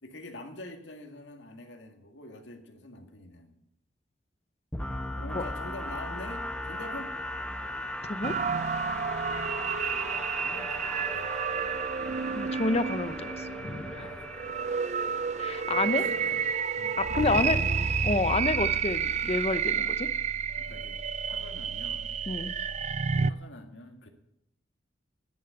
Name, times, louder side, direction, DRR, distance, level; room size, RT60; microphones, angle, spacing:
voice 1, 0.0-3.6 5.2-7.2 9.7-9.9 10.3-11.6 14.0-14.9 15.7-17.8 20.6-22.2 23.3-24.1, left 2 dB, 75° left, 5 dB, 1.9 m, -45 dB
sound 1, 4.7-16.5, left 1 dB, 5° left, 1.0 m, -38 dB
voice 2, 8.0-8.3 12.3-14.1 15.4-16.0 17.0-17.6 18.0-20.1 22.3-22.5, left 2 dB, 35° left, 13 dB, 0.7 m, -29 dB
sound 2, 8.2-23.3, right 6 dB, 40° right, 0.4 m, -30 dB
10.5 x 10.5 x 8.1 m, 0.79 s
head